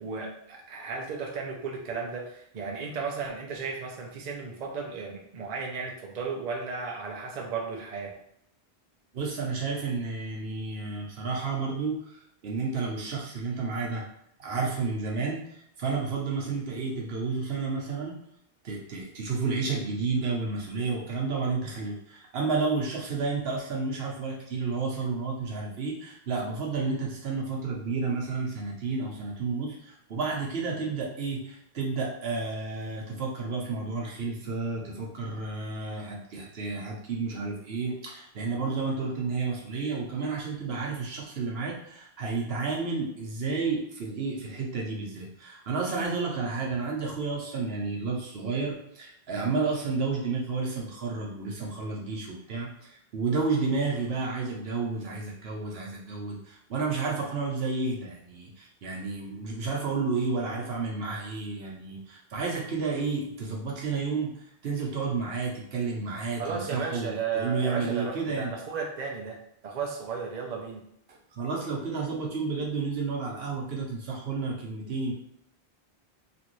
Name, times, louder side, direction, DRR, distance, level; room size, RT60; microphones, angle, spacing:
voice 1, 0.0-8.1 66.4-70.8, right 5 dB, 50° right, 0 dB, 0.6 m, -34 dB
voice 2, 9.1-12.2 12.4-14.0 14.4-18.2 18.6-68.5 71.3-75.1, right 4 dB, 70° right, -2 dB, 1.0 m, -31 dB
3.0 x 2.6 x 3.0 m, 0.74 s
omnidirectional pair, 1.1 m